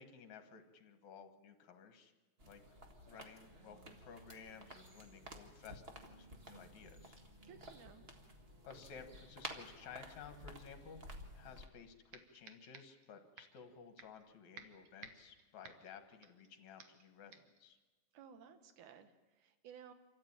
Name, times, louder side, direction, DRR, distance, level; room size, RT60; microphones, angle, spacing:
voice 1, 0.0-2.1 2.4-2.6 3.0-7.2 8.6-11.0 11.3-17.8, left 6 dB, 70° left, 8 dB, 2.8 m, -55 dB
sound 1, 2.4-11.7, right 1 dB, 25° right, 1.4 m, -53 dB
voice 2, 7.4-8.1 18.1-19.9, right 7 dB, 80° right, 10 dB, 2.6 m, -57 dB
sound 2, 11.6-11.7 12.1-13.1 13.4-13.6 14.0-14.3 14.6-16.5 16.8-17.1 17.3-17.6, right 5 dB, 60° right, 2.3 m, -57 dB
26.5 x 14.0 x 9.0 m, 1.3 s
omnidirectional pair, 3.5 m